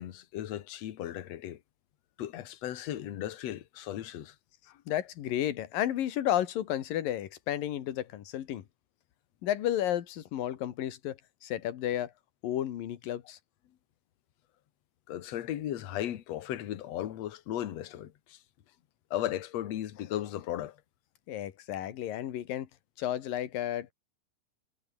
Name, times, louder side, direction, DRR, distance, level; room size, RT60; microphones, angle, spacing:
voice 1, 0.0-1.6 2.2-4.4 4.7-4.8 15.1-18.4 19.1-20.8, left 12 dB, 55° left, 2.2 m, -36 dB
voice 2, 4.9-8.6 9.4-12.1 12.4-13.4 21.3-22.7 23.0-23.9, left 12 dB, 75° left, 3.4 m, -32 dB
omnidirectional pair, 4.1 m